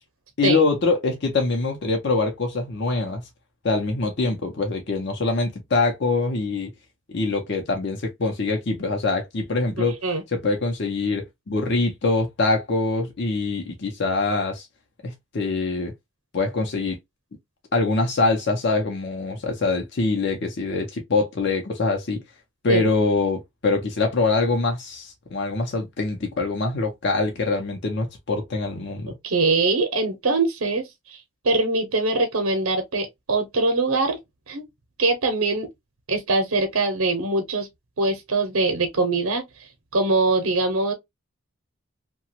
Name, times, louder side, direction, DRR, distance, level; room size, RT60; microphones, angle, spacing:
voice 1, 0.4-3.2 3.6-6.7 7.1-10.0 10.3-14.7 15.0-15.9 16.3-17.0 17.7-22.2 22.6-29.1, left 3 dB, 55° left, 0.6 m, -24 dB
voice 2, 9.8-10.2 22.7-22.9 29.2-31.2 31.4-34.2 34.5-34.6 35.0-35.7 36.1-37.7 38.0-39.4 39.9-40.9, right 3 dB, 85° right, 0.7 m, -22 dB
2.9 x 2.2 x 2.7 m
head